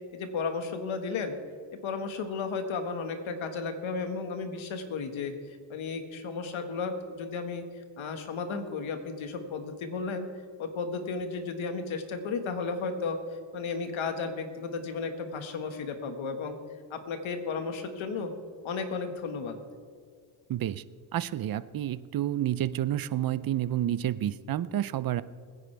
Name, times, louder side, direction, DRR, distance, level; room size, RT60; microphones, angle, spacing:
voice 1, 0.1-1.4 1.8-10.3 10.6-13.2 13.5-16.6 16.9-18.3 18.6-19.6, left 4 dB, 70° left, 6 dB, 1.8 m, -34 dB
voice 2, 20.5-20.8 21.1-25.2, right 12 dB, 45° right, 16 dB, 0.6 m, -29 dB
21.5 x 10.0 x 3.4 m, 2.1 s
cardioid pair, 90°, 49 cm